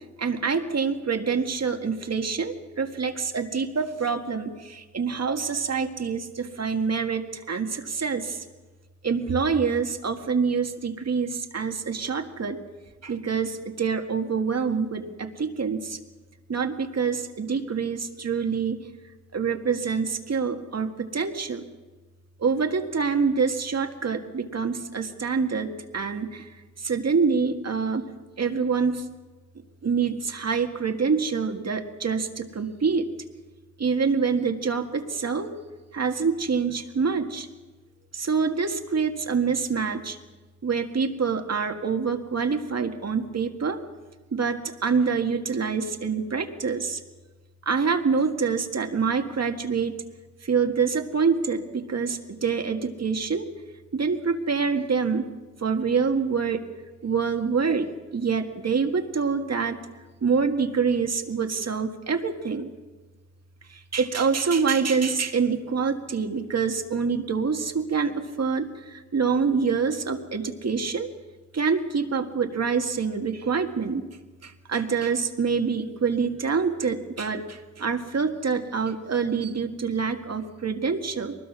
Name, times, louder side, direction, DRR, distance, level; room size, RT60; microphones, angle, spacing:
voice 1, 0.2-8.4 9.0-12.6 13.0-16.0 16.5-18.8 19.3-21.7 22.4-26.5 26.8-28.1 28.4-29.0 29.8-33.1 33.8-35.5 35.9-37.5 38.1-40.2 40.6-43.8 44.3-47.0 47.7-49.9 50.4-53.5 53.9-55.2 55.6-56.6 57.0-59.8 60.2-62.7 63.7-71.1 71.5-74.1 74.4-81.4, right 5 dB, 60° right, 6 dB, 1.8 m, -26 dB
22.5 x 20.5 x 6.1 m, 1.3 s
wide cardioid pair, 80°, 29 cm